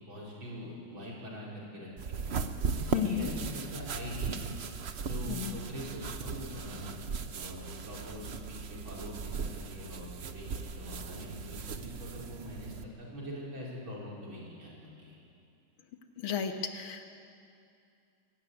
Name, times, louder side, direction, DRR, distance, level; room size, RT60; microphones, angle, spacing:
voice 1, 0.0-2.2 2.7-4.5 5.0-7.0 7.4-10.1 10.3-15.2, equal, 65° right, -5 dB, 5.7 m, -43 dB
sound 1, 2.0-12.8, right 5 dB, 90° right, 0.5 m, -38 dB
voice 2, 2.9-3.3 5.3-5.6 16.2-17.1, left 8 dB, 75° left, 6 dB, 2.1 m, -33 dB
23.0 x 13.0 x 9.6 m, 2.5 s
omnidirectional pair, 2.3 m